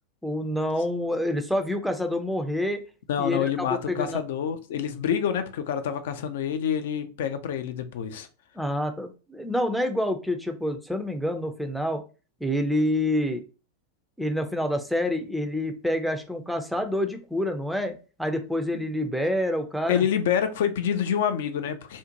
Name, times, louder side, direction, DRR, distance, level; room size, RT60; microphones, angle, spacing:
voice 1, 0.2-2.8 3.2-4.2 8.6-12.0 12.4-13.4 14.2-20.0, left 1 dB, ahead, 0.4 m, -27 dB
voice 2, 3.1-8.3 19.9-22.0, left 8 dB, 55° left, 0.4 m, -27 dB
2.5 x 2.1 x 2.8 m
figure-of-eight pair, 90°, 0 cm